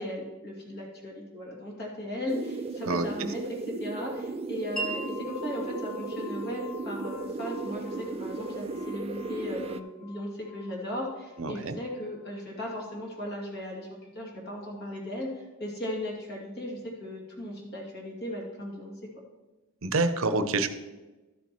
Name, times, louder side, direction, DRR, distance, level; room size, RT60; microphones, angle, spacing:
voice 1, 0.0-3.4 3.7-13.9 14.1-18.9, left 1 dB, 50° left, -2 dB, 2.4 m, -37 dB
sound 1, 2.3-9.8, right 3 dB, 25° right, 0.3 m, -36 dB
voice 2, 2.9-3.3 11.4-11.8 19.8-20.7, right 3 dB, 65° right, 9 dB, 0.7 m, -27 dB
Wind chime, 4.8-12.4, right 1 dB, 5° left, 0.9 m, -43 dB
13.0 x 7.2 x 3.0 m, 1.1 s
head